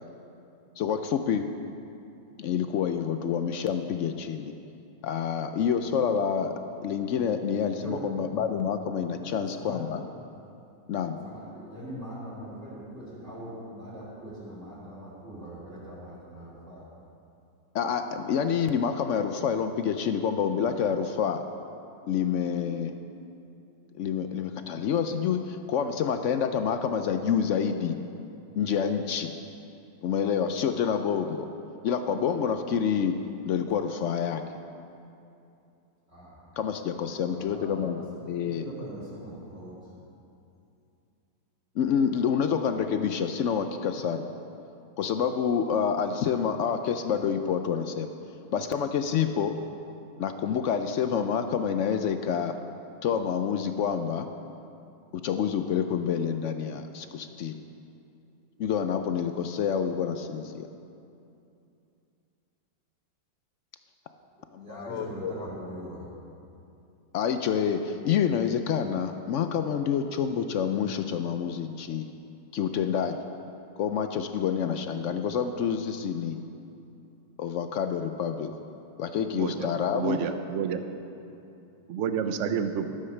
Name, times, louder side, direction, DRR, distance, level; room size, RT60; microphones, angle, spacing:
voice 1, 0.8-1.5 2.4-4.5 5.0-6.5 6.8-10.0 10.9-11.2 17.7-21.4 22.1-22.9 24.0-28.0 28.6-29.3 30.0-31.5 31.8-33.1 33.5-34.4 36.6-38.0 38.3-38.7 41.8-44.3 45.0-48.1 48.5-49.5 50.2-52.6 53.0-54.3 55.1-57.6 58.6-60.7 64.5-65.3 67.1-72.1 72.5-73.2 73.8-76.4 77.4-78.5 79.0-80.2, left 7 dB, 70° left, 8 dB, 0.7 m, -28 dB
voice 2, 7.7-8.1 9.1-9.9 11.2-16.9 36.1-36.4 37.2-39.9 64.6-66.1, right 1 dB, 40° right, -9 dB, 3.4 m, -42 dB
voice 3, 79.3-79.7 79.9-80.8 81.9-82.9, right 8 dB, 60° right, 8 dB, 0.9 m, -29 dB
13.0 x 7.8 x 6.5 m, 2.7 s
omnidirectional pair, 1.8 m